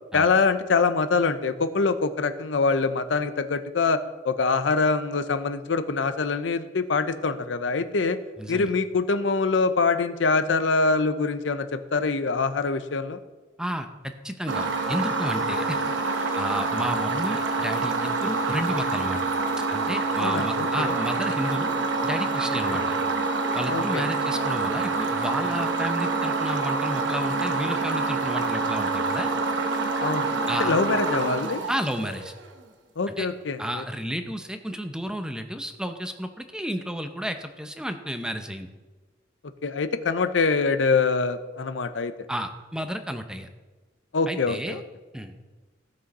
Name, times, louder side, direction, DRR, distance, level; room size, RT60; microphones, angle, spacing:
voice 1, 0.1-8.2 8.5-13.2 20.2-21.0 22.5-22.8 23.7-24.0 30.0-30.3 30.6-31.6 33.0-33.8 39.6-42.1 44.1-44.8, left 4 dB, 85° left, 11 dB, 0.7 m, -24 dB
voice 2, 8.4-8.7 13.6-15.8 16.4-19.2 19.7-21.7 22.0-22.9 23.5-29.3 30.5-30.7 31.7-32.3 33.1-33.3 33.6-38.7 42.3-43.5 44.3-44.8 45.1-45.3, equal, 5° right, 7 dB, 0.6 m, -32 dB
sound 1, 14.5-32.4, right 3 dB, 80° right, 1.0 m, -26 dB
15.5 x 6.3 x 4.1 m, 1.2 s
head